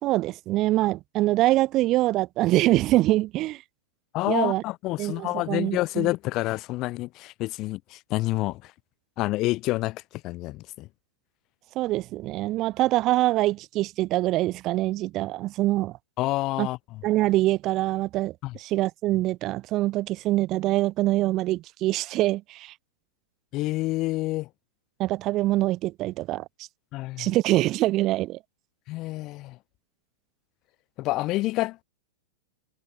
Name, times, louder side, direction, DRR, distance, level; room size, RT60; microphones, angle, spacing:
voice 1, 0.0-3.6 4.3-4.6 5.0-6.1 11.8-16.0 16.6-16.7 17.0-22.7 25.0-26.5 27.2-28.4, right 17 dB, 35° right, 1.9 m, -24 dB
voice 2, 4.1-8.7 9.2-10.9 16.2-17.0 18.4-18.6 23.5-24.5 26.9-27.3 28.9-29.6 31.0-31.8, left 19 dB, 40° left, 5.0 m, -28 dB
hypercardioid pair, 135°, 0 cm